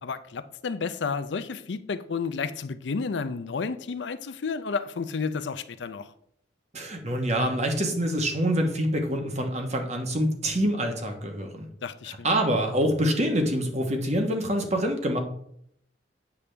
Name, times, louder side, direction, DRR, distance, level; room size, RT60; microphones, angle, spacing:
voice 1, 0.0-6.1 11.8-12.3, left 5 dB, 70° left, 0.5 m, -31 dB
voice 2, 6.7-11.7 12.2-15.2, equal, 35° right, 1.2 m, -26 dB
8.4 x 6.8 x 3.3 m
head